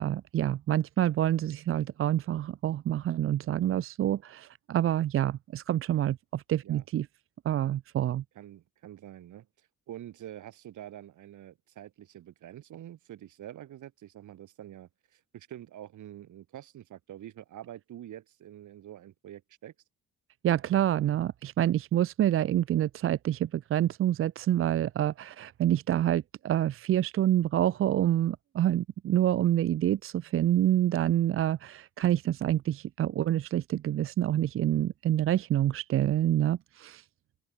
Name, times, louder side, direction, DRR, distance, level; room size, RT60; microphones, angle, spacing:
voice 1, 0.0-7.1 7.5-8.2 20.4-37.0, right 12 dB, 45° right, 0.5 m, -27 dB
voice 2, 8.4-9.5 9.9-19.7, right 12 dB, 65° right, 5.4 m, -46 dB
open air
cardioid pair, 155°, 32 cm